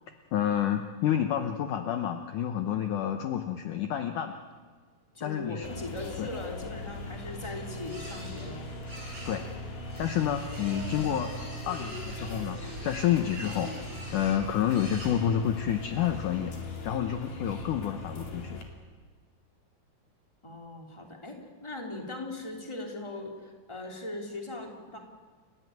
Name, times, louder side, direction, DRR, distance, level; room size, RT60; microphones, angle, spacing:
voice 1, 0.3-4.4 5.2-5.7 6.2-6.3 9.3-9.4 10.0-11.3 11.7-13.7 14.1-16.5 16.8-18.6, left 10 dB, 80° left, 6 dB, 1.8 m, -29 dB
voice 2, 5.1-8.7 20.4-21.4 21.6-25.0, left 2 dB, 10° left, 1 dB, 2.5 m, -39 dB
sound 1, 5.6-18.6, left 1 dB, 55° left, 3.9 m, -39 dB
sound 2, 6.9-15.7, right 1 dB, 25° right, 7.7 m, -47 dB
30.0 x 14.5 x 9.3 m, 1.5 s
omnidirectional pair, 5.0 m